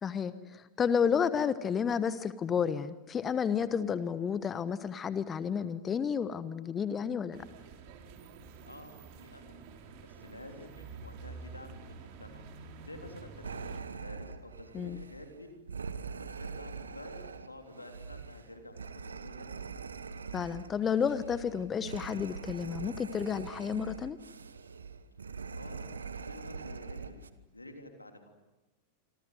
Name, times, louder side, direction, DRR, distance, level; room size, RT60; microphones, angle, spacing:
voice 1, 0.0-7.4 14.7-15.0 20.3-24.2, left 7 dB, 20° left, 15 dB, 1.2 m, -31 dB
sound 1, 7.3-13.8, right 4 dB, 45° right, 3.7 m, -49 dB
voice 2, 8.6-15.5 15.8-19.7 25.2-27.2 27.5-28.3, left 1 dB, 85° left, 4 dB, 3.4 m, -50 dB
sound 2, 13.4-27.3, right 5 dB, 70° right, 1.3 m, -43 dB
27.5 x 25.5 x 8.0 m, 1.1 s
figure-of-eight pair, 90°, 0 cm